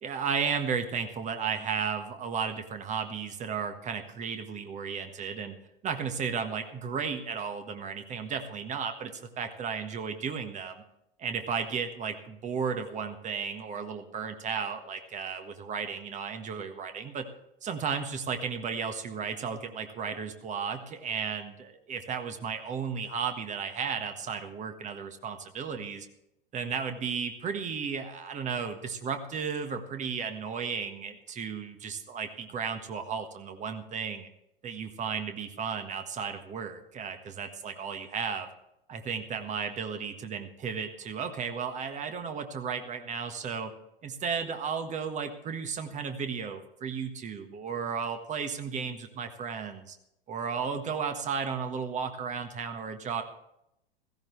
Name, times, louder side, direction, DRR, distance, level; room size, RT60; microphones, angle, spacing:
voice 1, 0.0-5.6 5.8-10.8 11.2-17.3 17.6-26.1 26.5-34.3 34.6-38.5 38.9-43.7 44.0-50.0 50.3-53.2, right 6 dB, 25° right, 7 dB, 1.4 m, -34 dB
16.0 x 15.5 x 3.2 m, 0.82 s
figure-of-eight pair, 90°, 30 cm